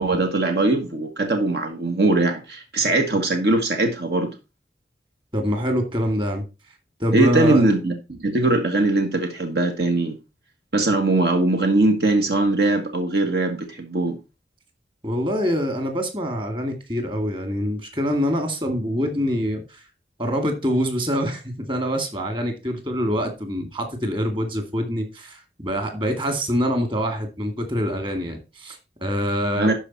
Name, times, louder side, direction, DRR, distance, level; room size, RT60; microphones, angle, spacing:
voice 1, 0.0-4.3 7.1-10.2 10.7-14.2 29.6-29.7, right 2 dB, 70° right, 1.6 m, -21 dB
voice 2, 5.3-6.5 7.0-7.7 15.0-19.6 20.2-21.4 21.7-29.7, equal, 30° right, 2.3 m, -25 dB
12.0 x 4.9 x 4.1 m
head